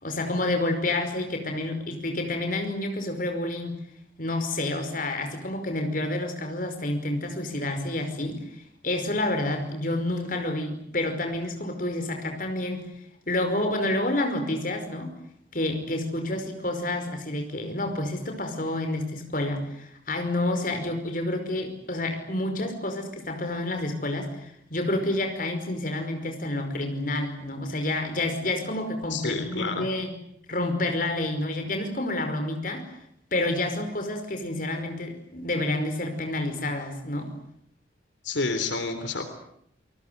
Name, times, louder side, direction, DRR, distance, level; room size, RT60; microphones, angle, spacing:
voice 1, 0.0-3.8 4.2-8.4 8.8-12.8 13.3-15.1 15.5-30.1 30.5-32.8 33.3-37.3, left 1 dB, 45° left, 6 dB, 5.2 m, -29 dB
voice 2, 29.1-29.9 38.2-39.2, left 3 dB, 80° left, 8 dB, 3.5 m, -29 dB
28.0 x 20.0 x 9.5 m, 0.73 s
head